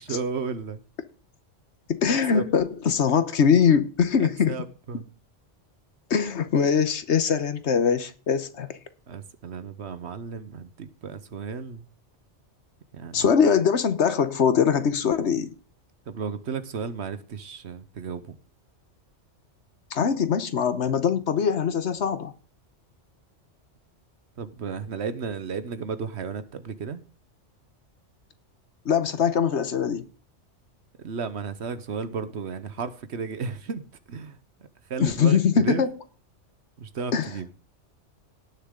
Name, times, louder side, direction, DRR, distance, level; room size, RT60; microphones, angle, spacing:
voice 1, 0.1-0.8 2.3-2.4 4.2-5.0 9.1-11.8 12.9-13.2 16.1-18.4 24.4-27.0 31.0-34.4 34.9-35.8 36.8-37.5, right 5 dB, 65° right, 1.2 m, -33 dB
voice 2, 1.9-4.6 6.1-8.8 13.1-15.5 19.9-22.3 28.8-30.1 35.0-35.9 37.1-37.3, left 7 dB, 70° left, 1.3 m, -22 dB
18.0 x 6.8 x 3.8 m
omnidirectional pair, 1.2 m